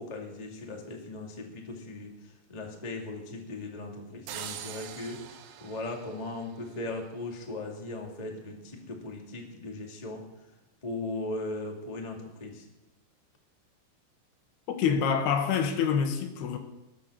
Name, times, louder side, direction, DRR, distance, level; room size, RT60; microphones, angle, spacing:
voice 1, 0.0-10.2 10.8-12.7, left 2 dB, 15° left, 0 dB, 1.3 m, -38 dB
sound 1, 4.3-7.1, right 10 dB, 90° right, 3.1 m, -44 dB
voice 2, 14.7-16.6, left 7 dB, 75° left, 7 dB, 3.1 m, -26 dB
20.5 x 7.6 x 6.5 m, 0.93 s
omnidirectional pair, 4.7 m